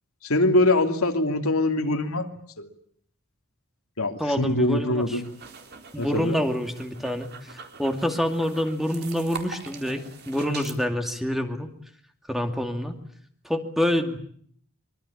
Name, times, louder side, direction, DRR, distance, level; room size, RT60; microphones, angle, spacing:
voice 1, 0.2-2.3 2.6-2.7 4.0-5.3 6.0-6.4, left 2 dB, 80° left, 5 dB, 2.9 m, -23 dB
voice 2, 4.2-5.2 5.9-11.7 12.3-13.0 13.4-14.2, equal, ahead, 5 dB, 2.4 m, -27 dB
sound 1, 5.0-10.8, right 5 dB, 50° right, 4.1 m, -43 dB
25.0 x 24.0 x 8.6 m, 0.62 s
head